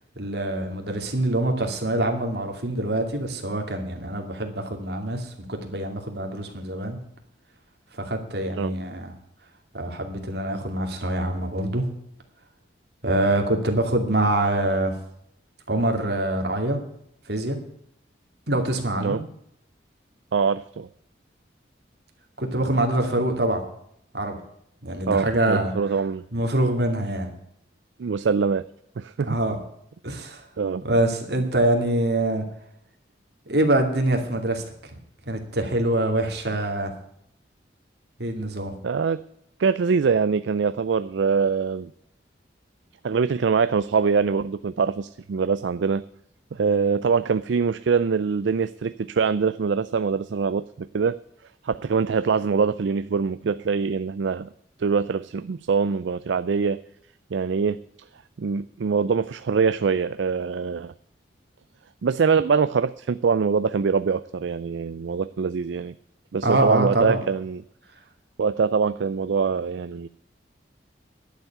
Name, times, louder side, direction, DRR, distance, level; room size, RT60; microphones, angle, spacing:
voice 1, 0.2-7.0 8.0-9.1 9.7-11.9 13.0-14.9 15.7-16.8 17.3-17.6 18.5-19.2 22.4-23.6 24.1-24.4 24.8-25.7 26.3-27.3 29.2-29.6 30.0-30.4 30.8-32.4 33.5-34.6 35.3-36.9 38.2-38.7 66.4-67.2, right 1 dB, 60° right, 3 dB, 2.5 m, -24 dB
voice 2, 20.3-20.9 25.1-26.2 28.0-28.6 29.0-29.4 30.6-30.8 38.8-39.2 39.6-41.9 43.0-46.0 46.5-51.2 51.6-54.5 54.8-56.8 57.3-57.8 58.4-60.9 62.0-65.9 66.3-67.6 68.4-70.1, right 5 dB, 75° right, 14 dB, 0.4 m, -23 dB
11.5 x 7.2 x 9.2 m, 0.73 s
head